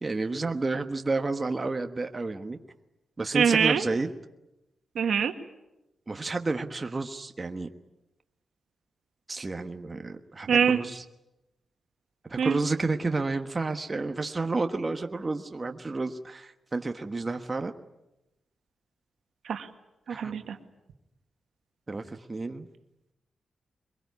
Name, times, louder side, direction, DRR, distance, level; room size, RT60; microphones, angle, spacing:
voice 1, 0.0-2.6 3.2-4.1 6.1-7.7 9.3-11.0 12.3-17.7 20.1-20.3 21.9-22.7, right 3 dB, 25° right, 6 dB, 1.3 m, -31 dB
voice 2, 3.3-3.8 5.0-5.3 10.5-10.8 12.4-12.6 19.4-19.7 20.1-20.6, right 7 dB, 80° right, 6 dB, 1.9 m, -24 dB
23.0 x 22.5 x 9.5 m, 0.94 s
wide cardioid pair, 110°, 0 cm